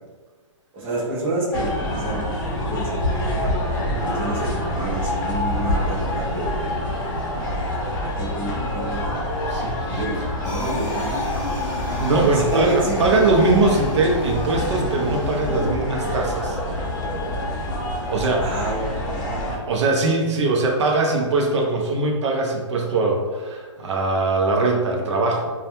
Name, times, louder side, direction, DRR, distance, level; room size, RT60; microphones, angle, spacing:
voice 1, 0.7-6.7 7.5-9.1 9.8-10.2 10.4-11.6 12.3-13.3 18.4-18.8 19.1-19.6, right 1 dB, 10° right, -8 dB, 0.3 m, -29 dB
sound 1, 1.5-19.6, left 1 dB, 40° left, 0.7 m, -26 dB
Wind instrument woodwind instrument, 8.8-13.3, left 7 dB, 75° left, 0.9 m, -45 dB
voice 2, 9.5-10.0 12.0-16.6 18.1-18.7 19.7-25.5, right 3 dB, 60° right, 0 dB, 0.6 m, -21 dB
sound 2, 10.4-15.7, equal, 5° left, 0.8 m, -34 dB
2.2 x 2.1 x 2.8 m, 1.4 s
hypercardioid pair, 155°, 17 cm